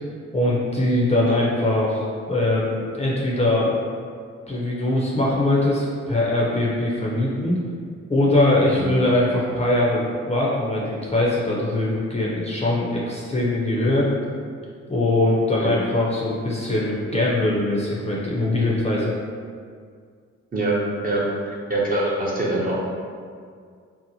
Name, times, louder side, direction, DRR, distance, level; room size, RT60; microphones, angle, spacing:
voice 1, 0.3-3.7 4.5-7.6 8.1-14.1 14.9-19.1, left 1 dB, 20° left, -5 dB, 0.6 m, -22 dB
voice 2, 21.0-22.9, right 2 dB, 30° right, -6 dB, 0.8 m, -24 dB
2.7 x 2.0 x 2.8 m, 2.1 s
supercardioid pair, 45°, 31 cm